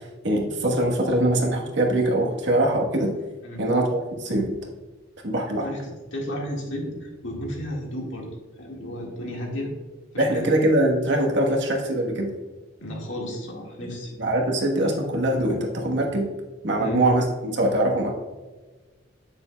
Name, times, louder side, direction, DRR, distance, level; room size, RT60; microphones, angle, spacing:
voice 1, 0.0-3.1 3.6-4.5 5.2-5.7 10.2-12.3 14.2-16.3 16.6-18.1, right 1 dB, 65° right, 0 dB, 1.2 m, -23 dB
voice 2, 5.6-8.3 8.6-9.7 10.1-10.6 12.8-14.1 16.8-17.0, equal, 75° left, -1 dB, 1.8 m, -33 dB
8.9 x 6.9 x 2.2 m, 1.3 s
head